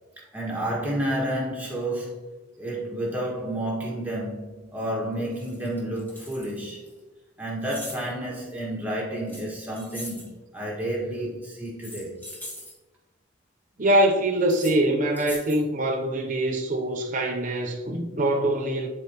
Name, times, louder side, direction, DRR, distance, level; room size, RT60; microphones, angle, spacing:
voice 1, 0.2-2.2 2.6-6.8 7.4-12.2, right 1 dB, 10° right, 1.7 m, -30 dB
sound 1, 4.8-4.9 5.3-6.9 7.6-8.1 9.3-10.3 11.6-12.7 14.4-14.7 15.1-15.6, left 1 dB, 10° left, 1.5 m, -41 dB
voice 2, 13.8-18.9, right 1 dB, 40° right, 0.7 m, -24 dB
11.0 x 4.4 x 3.0 m
head